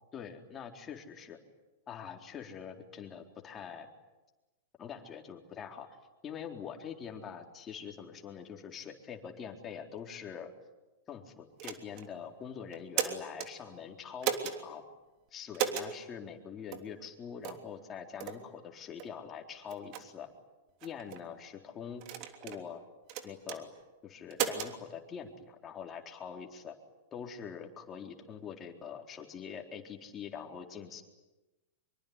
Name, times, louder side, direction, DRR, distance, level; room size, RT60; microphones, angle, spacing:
voice 1, 0.1-1.4 1.9-3.9 4.8-5.9 6.2-10.5 11.1-14.8 15.3-20.3 20.8-22.0 22.4-22.8 23.2-23.7 24.0-26.8 27.1-31.0, left 7 dB, 25° left, 3 dB, 4.0 m, -44 dB
sound 1, 11.6-12.1 12.7-13.5 14.2-14.6 15.5-15.9 16.7-16.9 17.4-17.7 18.2-18.4 19.0-19.1 19.7-20.0 20.8-21.2 22.0-22.6 23.1-23.6 24.3-24.7, right 10 dB, 45° right, 3.2 m, -34 dB
25.0 x 24.0 x 9.8 m, 1.1 s
hypercardioid pair, 105°, 0 cm